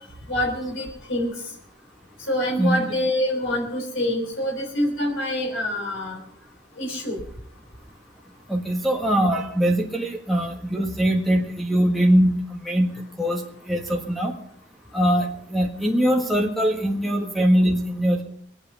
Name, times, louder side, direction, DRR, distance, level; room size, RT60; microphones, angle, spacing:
voice 1, 0.3-1.3 2.3-6.2 6.8-7.2, left 1 dB, 80° left, 0 dB, 3.6 m, -26 dB
voice 2, 8.5-14.4 14.9-18.2, equal, ahead, 1 dB, 1.5 m, -22 dB
22.5 x 8.8 x 5.5 m, 0.69 s
head